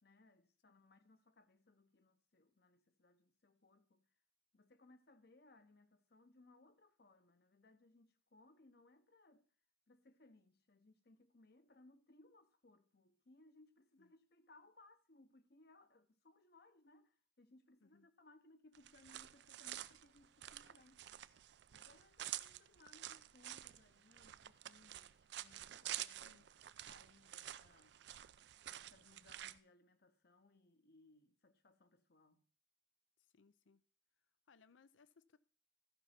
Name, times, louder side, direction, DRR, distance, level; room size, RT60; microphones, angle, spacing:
voice 1, 0.0-4.1 4.5-9.5 9.9-21.1 21.7-26.4 26.9-28.0 28.7-32.4, left 2 dB, 55° left, 0.9 m, -67 dB
sound 1, 18.7-29.6, right 13 dB, 65° right, 0.4 m, -49 dB
voice 2, 33.2-33.8 34.5-35.4, left 4 dB, 85° left, 0.6 m, -68 dB
14.0 x 5.5 x 5.8 m
head